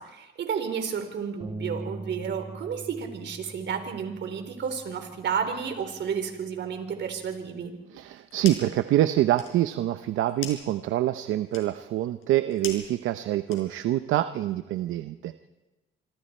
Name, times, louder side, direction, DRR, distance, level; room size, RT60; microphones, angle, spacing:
voice 1, 0.0-7.7, right 7 dB, 65° right, 6 dB, 3.9 m, -32 dB
Bass guitar, 1.4-7.7, right 2 dB, 20° right, 1.5 m, -43 dB
voice 2, 7.9-15.5, right 13 dB, 85° right, 11 dB, 0.8 m, -26 dB
sound 1, 8.0-8.8 9.1-14.0, left 7 dB, 85° left, 5.1 m, -42 dB
26.0 x 25.5 x 4.4 m, 1.1 s
cardioid pair, 90°, 20 cm